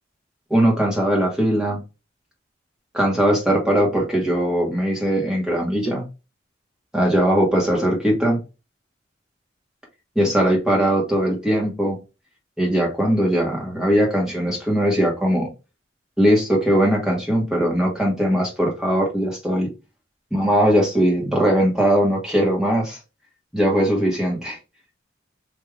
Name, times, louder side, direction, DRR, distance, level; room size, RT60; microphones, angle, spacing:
voice 1, 0.5-1.8 2.9-6.0 6.9-8.4 10.1-12.0 12.6-15.5 16.2-19.7 20.3-23.0 23.5-24.6, equal, 5° right, 1.3 m, -20 dB
3.5 x 2.7 x 3.2 m
head